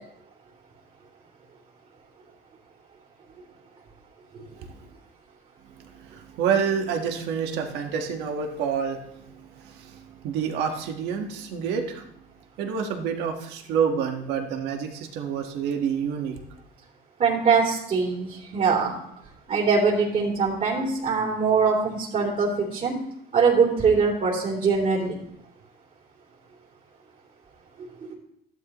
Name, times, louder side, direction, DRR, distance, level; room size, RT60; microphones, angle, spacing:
voice 1, 6.0-9.0 9.6-12.0 12.6-16.4, right 7 dB, 90° right, 4 dB, 1.6 m, -28 dB
voice 2, 17.2-18.9 19.5-22.9 23.3-25.1 28.1-28.2, right 5 dB, 50° right, -3 dB, 3.3 m, -22 dB
13.5 x 11.5 x 3.1 m, 0.73 s
cardioid pair, 110°, 17 cm